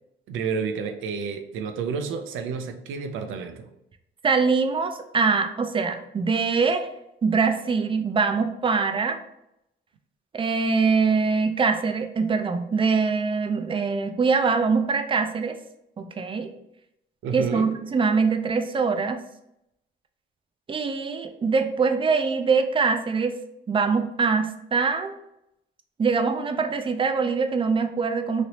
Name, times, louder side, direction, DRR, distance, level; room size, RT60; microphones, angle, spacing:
voice 1, 0.3-3.7 17.2-17.7, right 5 dB, 85° right, 7 dB, 0.5 m, -30 dB
voice 2, 4.2-6.9 7.2-9.2 10.3-15.6 16.0-16.5 17.3-19.2 20.7-23.3 23.7-25.1 26.0-28.5, right 5 dB, 25° right, 6 dB, 0.4 m, -23 dB
3.1 x 2.9 x 2.8 m, 0.81 s
cardioid pair, 90°, 20 cm